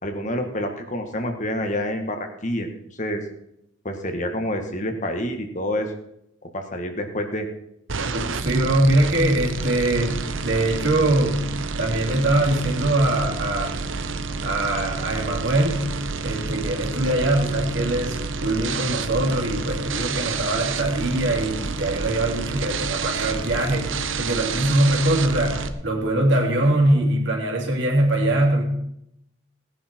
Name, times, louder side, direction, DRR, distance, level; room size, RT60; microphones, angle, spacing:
voice 1, 0.0-2.7 3.0-3.2 3.9-5.9 6.5-7.5, left 1 dB, 40° left, 5 dB, 1.8 m, -27 dB
sound 1, 7.9-25.7, right 4 dB, 85° right, 1.0 m, -29 dB
voice 2, 8.1-11.5 11.8-13.7 14.4-15.9 16.2-28.6, right 1 dB, 65° right, -1 dB, 3.4 m, -22 dB
18.0 x 10.5 x 4.6 m, 0.79 s
head